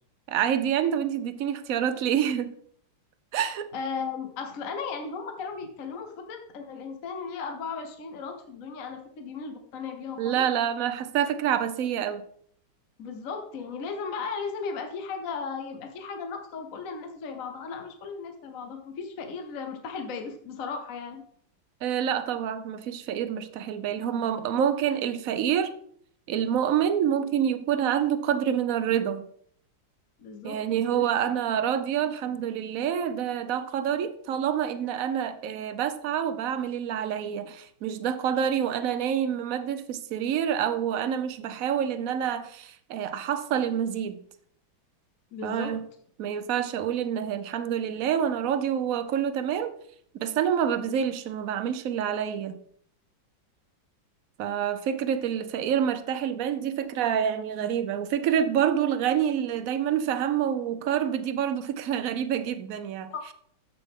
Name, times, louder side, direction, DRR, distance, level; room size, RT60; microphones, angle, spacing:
voice 1, 0.3-2.5 3.3-3.7 10.2-12.2 21.8-25.7 26.3-29.2 30.4-44.2 45.4-45.8 46.2-49.7 50.2-52.6 54.4-63.1, right 9 dB, 60° right, 0.9 m, -27 dB
voice 2, 3.7-10.4 13.0-21.2 30.2-31.1 45.3-45.7 63.1-63.2, left 5 dB, 50° left, 1.3 m, -36 dB
14.0 x 5.8 x 3.7 m
omnidirectional pair, 2.1 m